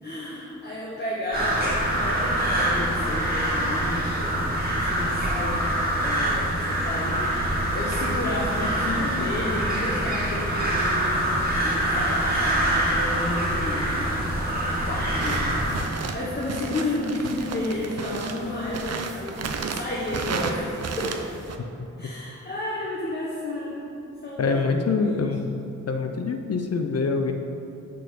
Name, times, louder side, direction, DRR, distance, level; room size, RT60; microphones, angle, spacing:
voice 1, 0.0-5.6 6.0-14.0 14.4-21.2 22.0-23.9 24.2-25.3, left 1 dB, 35° left, -5 dB, 0.9 m, -32 dB
sound 1, 1.3-15.8, right 1 dB, 30° right, 1.7 m, -25 dB
sound 2, 15.2-21.6, right 4 dB, 55° right, 0.5 m, -33 dB
voice 2, 24.4-25.5 25.9-27.3, left 4 dB, 55° left, 6 dB, 0.5 m, -25 dB
6.6 x 4.2 x 6.6 m, 2.8 s
wide cardioid pair, 160°, 30 cm